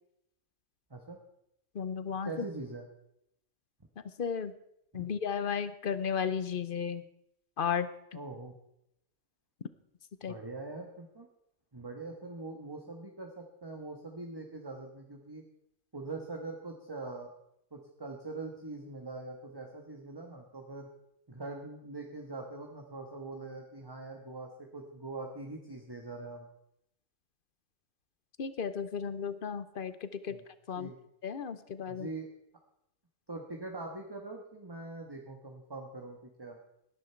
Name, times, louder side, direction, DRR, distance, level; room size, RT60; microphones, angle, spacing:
voice 1, 1.7-2.3 4.2-4.5 4.9-7.0 7.6-7.9 10.2-10.3 28.4-30.4 30.7-30.9 31.2-32.1, left 7 dB, 45° left, 13 dB, 0.8 m, -34 dB
voice 2, 2.2-2.8 4.9-5.1 8.1-8.5 10.3-11.3 11.7-15.4 15.9-17.3 17.7-20.9 21.3-26.5 30.3-30.4 30.8-31.0 31.9-32.3 33.3-36.6, right 3 dB, 20° right, 2 dB, 1.3 m, -43 dB
18.5 x 10.5 x 4.5 m, 0.77 s
omnidirectional pair, 1.5 m